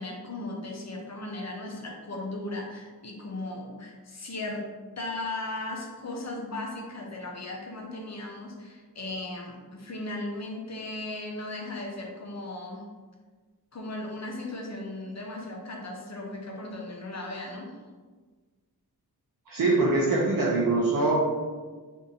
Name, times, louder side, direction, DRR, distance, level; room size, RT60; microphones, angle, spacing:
voice 1, 0.0-4.6 5.0-12.8 13.7-17.7, left 2 dB, 45° left, -1 dB, 0.7 m, -37 dB
voice 2, 19.5-21.3, right 2 dB, 60° right, -5 dB, 0.7 m, -23 dB
3.8 x 2.7 x 2.7 m, 1.4 s
wide cardioid pair, 75°, 38 cm